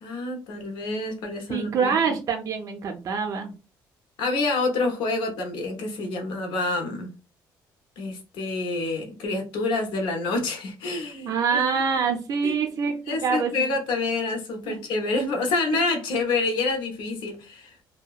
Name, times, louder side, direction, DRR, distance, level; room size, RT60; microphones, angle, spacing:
voice 1, 0.0-2.2 4.2-7.1 8.0-11.6 12.4-12.6 13.1-17.8, left 3 dB, 85° left, 0.7 m, -27 dB
voice 2, 1.5-3.5 11.2-13.7 14.7-14.8 15.7-15.8, right 6 dB, 45° right, 0.4 m, -25 dB
2.7 x 2.1 x 2.3 m
cardioid pair, 115°, 8 cm